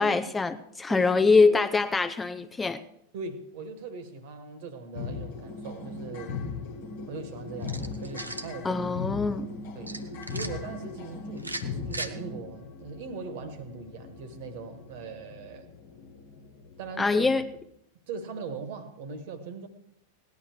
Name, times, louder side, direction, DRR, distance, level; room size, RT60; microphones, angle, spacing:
voice 1, 0.0-2.8 8.6-9.5 17.0-17.4, left 4 dB, 15° left, 0.6 m, -24 dB
voice 2, 0.9-1.7 3.1-6.4 7.1-9.0 9.7-10.0 10.3-15.7 16.8-17.3 18.1-19.7, right 4 dB, 50° right, 1.6 m, -40 dB
sound 1, 4.9-17.6, left 4 dB, 55° left, 1.4 m, -39 dB
sound 2, 7.6-8.5 9.9-10.5 11.4-12.1, right 2 dB, 85° right, 0.8 m, -37 dB
17.5 x 11.0 x 4.6 m
figure-of-eight pair, 90°, 0 cm